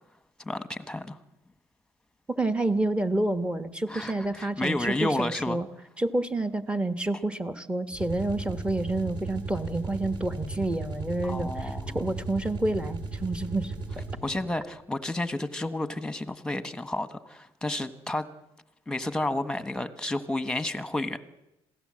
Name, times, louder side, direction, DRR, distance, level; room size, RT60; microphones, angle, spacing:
voice 1, 0.4-1.2 3.9-5.6 11.2-12.0 14.2-18.3 18.9-21.2, left 2 dB, 5° left, 11 dB, 1.4 m, -31 dB
voice 2, 2.3-5.7 6.0-13.7, right 2 dB, 10° right, 11 dB, 1.3 m, -29 dB
sound 1, 7.9-14.4, right 3 dB, 45° right, 5.6 m, -36 dB
26.5 x 16.5 x 7.7 m, 0.89 s
cardioid pair, 130°, 11 cm